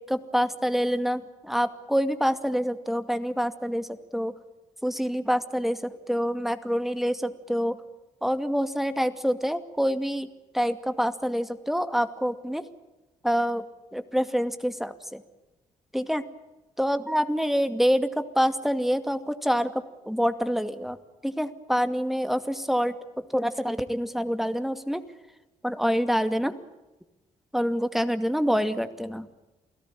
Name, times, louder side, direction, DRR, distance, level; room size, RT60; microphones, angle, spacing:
voice 1, 0.1-3.9 4.1-4.3 4.8-7.8 8.2-10.3 10.5-12.6 13.2-13.6 13.9-15.2 15.9-16.2 16.8-19.7 20.1-21.0 21.2-22.9 23.3-25.0 25.6-26.5 27.5-29.3, equal, ahead, 10 dB, 2.4 m, -26 dB
29.0 x 17.0 x 8.9 m, 1.1 s
supercardioid pair, 60°, 14 cm